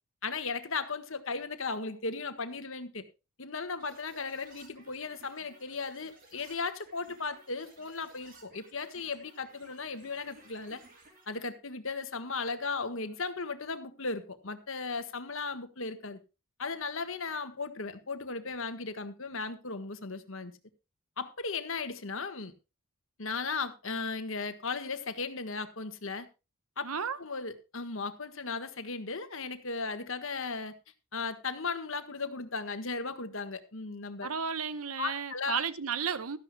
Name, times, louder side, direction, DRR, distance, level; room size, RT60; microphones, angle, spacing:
voice 1, 0.2-3.0 3.4-10.8 11.3-16.2 16.6-20.5 21.2-22.5 23.2-26.3 26.8-26.9 27.2-30.7 31.1-34.3 35.0-35.6, left 4 dB, 65° left, 1.5 m, -36 dB
sound 1, 3.8-11.3, right 2 dB, 40° right, 3.8 m, -58 dB
voice 2, 26.8-27.2 34.2-36.4, right 6 dB, 80° right, 1.0 m, -33 dB
16.5 x 13.0 x 2.3 m
head